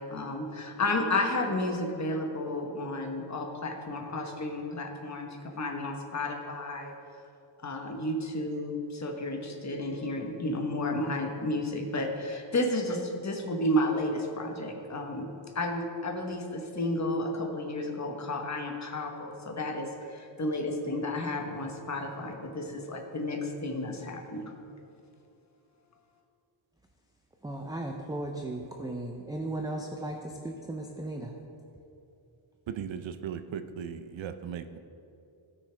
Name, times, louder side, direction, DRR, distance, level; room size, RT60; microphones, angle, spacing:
voice 1, 0.0-5.3 5.6-6.9 7.6-15.3 15.5-24.5, left 1 dB, 35° left, 3 dB, 1.1 m, -32 dB
voice 2, 27.4-31.4, right 2 dB, 10° right, 1 dB, 0.5 m, -36 dB
voice 3, 32.7-34.8, right 8 dB, 70° right, 10 dB, 0.6 m, -37 dB
17.5 x 6.3 x 3.4 m, 2.7 s
wide cardioid pair, 150°, 48 cm